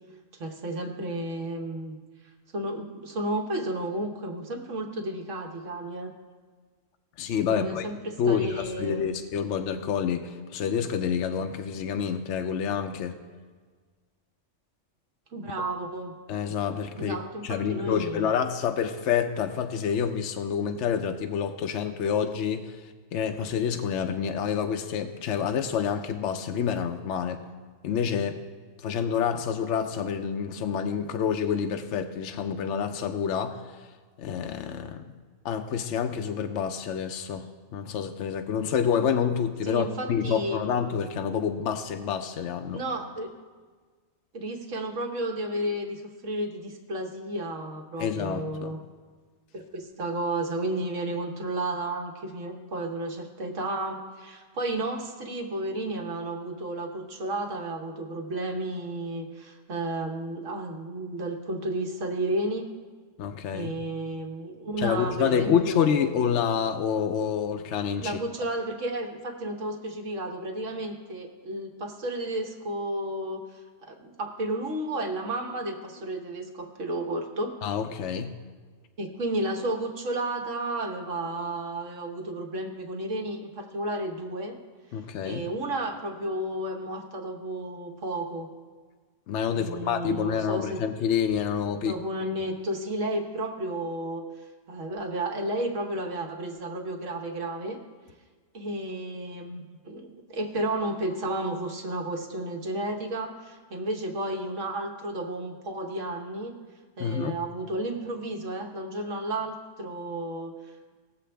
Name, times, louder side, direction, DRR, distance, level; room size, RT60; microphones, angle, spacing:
voice 1, 0.4-1.9 2.5-6.1 7.5-9.1 15.3-16.1 16.9-18.2 39.6-40.7 42.7-43.3 44.3-48.8 49.5-62.7 63.5-66.3 68.0-73.4 73.8-77.5 79.0-84.5 85.2-88.5 89.5-90.9 91.8-94.2 94.7-97.8 98.5-106.5 107.0-110.5, right 1 dB, 75° right, 3 dB, 1.4 m, -32 dB
voice 2, 7.2-7.9 8.2-13.2 16.3-17.2 17.4-27.4 27.8-28.4 28.8-33.9 34.2-35.1 35.4-37.5 37.7-42.8 48.0-48.8 63.2-63.7 64.8-68.2 77.6-78.3 84.9-85.5 89.3-92.0 107.0-107.4, left 7 dB, 70° left, 6 dB, 0.9 m, -28 dB
19.0 x 7.4 x 3.4 m, 1.5 s
omnidirectional pair, 1.3 m